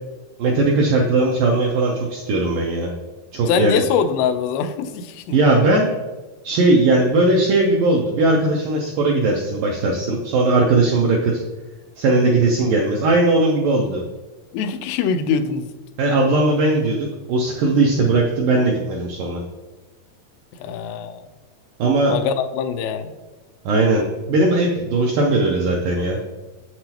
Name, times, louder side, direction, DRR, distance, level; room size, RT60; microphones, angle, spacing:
voice 1, 0.4-2.9 3.3-3.8 5.3-5.9 6.4-11.4 12.0-14.0 16.0-19.4 21.8-22.2 23.7-26.2, right 2 dB, 80° right, 0 dB, 1.9 m, -18 dB
voice 2, 3.5-5.4 14.5-15.6 20.6-21.3 22.1-23.1, left 6 dB, 90° left, 8 dB, 2.7 m, -23 dB
7.8 x 7.7 x 2.9 m, 1.2 s
omnidirectional pair, 4.7 m